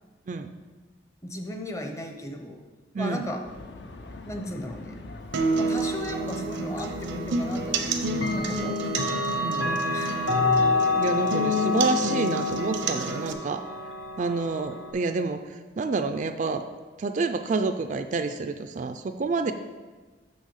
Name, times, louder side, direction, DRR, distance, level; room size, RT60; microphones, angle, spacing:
voice 1, 1.2-2.7 3.0-3.5 4.3-5.0 5.6-9.0 9.6-10.2, left 1 dB, 15° left, 5 dB, 0.6 m, -36 dB
sound 1, 3.4-8.7, left 3 dB, 60° left, 0.6 m, -43 dB
sound 2, 5.3-13.3, right 1 dB, 80° right, 0.7 m, -29 dB
Clock, 6.8-6.9 8.1-14.9, left 3 dB, 90° left, 1.2 m, -28 dB
voice 2, 9.4-9.7 10.9-13.6 14.2-16.6 17.0-19.5, right 3 dB, 40° right, 8 dB, 0.3 m, -28 dB
6.5 x 6.2 x 5.6 m, 1.3 s
head